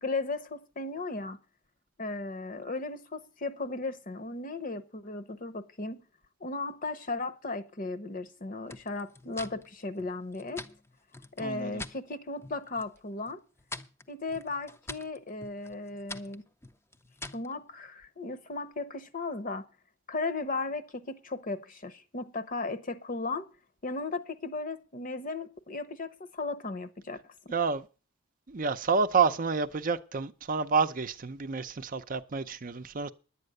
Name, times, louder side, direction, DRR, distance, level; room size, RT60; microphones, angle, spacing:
voice 1, 0.0-1.4 2.0-6.0 6.4-10.6 11.4-13.4 14.1-16.4 17.3-19.7 20.1-23.5 23.8-27.5, left 3 dB, 45° left, 0.9 m, -36 dB
sound 1, 8.7-12.0 12.4-13.0 13.3-17.5, left 2 dB, 15° left, 0.6 m, -45 dB
voice 2, 11.4-11.8 27.5-27.9 28.5-33.1, right 5 dB, 45° right, 0.6 m, -29 dB
11.0 x 8.7 x 6.5 m
head